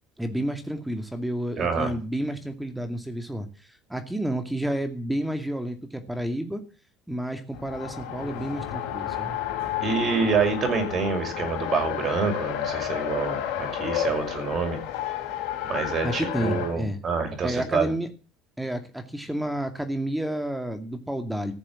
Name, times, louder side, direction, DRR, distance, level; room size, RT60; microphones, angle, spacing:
voice 1, 0.2-6.6 7.1-9.4 16.0-17.0 17.4-18.1 18.6-21.5, right 1 dB, 5° right, 7 dB, 2.3 m, -30 dB
voice 2, 1.6-1.9 9.8-14.8 15.7-17.9, right 5 dB, 45° right, 5 dB, 6.2 m, -27 dB
Race car auto racing, 7.5-16.8, left 10 dB, 75° left, 3.8 m, -31 dB
15.0 x 7.3 x 7.6 m, 0.36 s
supercardioid pair, 90°, 0 cm